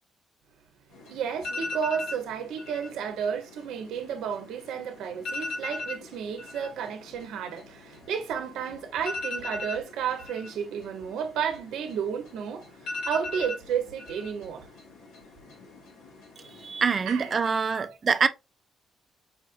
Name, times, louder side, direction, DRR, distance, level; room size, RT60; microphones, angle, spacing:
sound 1, 0.9-17.4, left 2 dB, 85° left, 1.6 m, -40 dB
voice 1, 1.1-14.7 17.1-17.3 17.7-18.0, right 7 dB, 85° right, 0.7 m, -32 dB
voice 2, 16.6-18.3, right 5 dB, 40° right, 0.4 m, -25 dB
4.9 x 2.5 x 2.4 m
cardioid pair, 90°, 0 cm